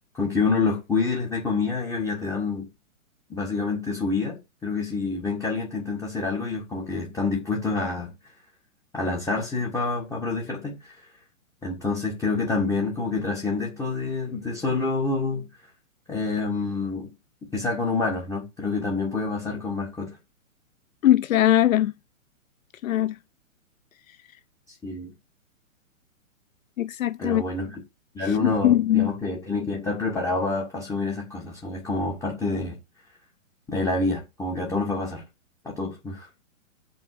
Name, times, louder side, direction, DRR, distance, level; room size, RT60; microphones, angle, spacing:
voice 1, 0.1-2.6 3.3-8.1 8.9-11.1 11.6-15.5 16.1-17.1 17.5-20.2 24.8-25.1 27.2-27.8 28.1-32.8 33.7-35.2 35.6-36.3, left 3 dB, 10° left, 1.6 m, -27 dB
voice 2, 21.0-21.9 22.8-23.2 26.8-27.4 28.2-29.1, left 13 dB, 85° left, 0.5 m, -21 dB
7.1 x 5.5 x 6.4 m
hypercardioid pair, 140°, 40 cm